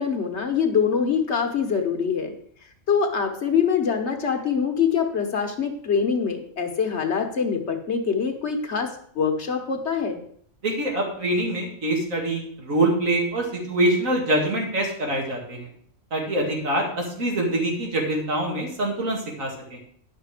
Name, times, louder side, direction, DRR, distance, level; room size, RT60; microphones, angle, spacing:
voice 1, 0.0-2.3 2.9-10.2, left 6 dB, 55° left, 5 dB, 1.3 m, -24 dB
voice 2, 10.6-15.7 16.1-19.8, right 1 dB, 70° right, 0 dB, 2.5 m, -25 dB
10.0 x 5.9 x 4.9 m, 0.62 s
omnidirectional pair, 1.4 m